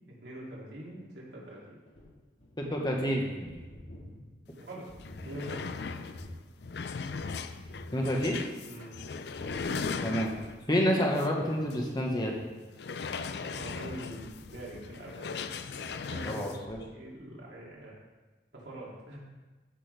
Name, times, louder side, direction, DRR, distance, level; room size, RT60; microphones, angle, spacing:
voice 1, 0.1-1.8 4.7-4.9 5.2-5.8 8.6-9.2 13.5-16.5 16.9-17.9 18.5-19.2, right 1 dB, 85° right, -5 dB, 2.8 m, -44 dB
sound 1, 1.5-7.4 7.6-8.9 9.2-10.7 11.0-11.2 11.5-11.8 12.3-12.5 13.1-16.4 16.7-16.9, left 1 dB, 90° left, 1.9 m, -50 dB
voice 2, 2.6-3.4 7.9-8.4 10.0-10.3 10.7-12.3 16.3-16.8, equal, 25° left, 0 dB, 1.2 m, -28 dB
sound 2, 4.6-4.7 5.0-10.7 11.2-11.3 11.7-11.8 12.7-16.6, left 5 dB, 70° left, 0.4 m, -38 dB
14.0 x 6.3 x 3.4 m, 1.2 s
head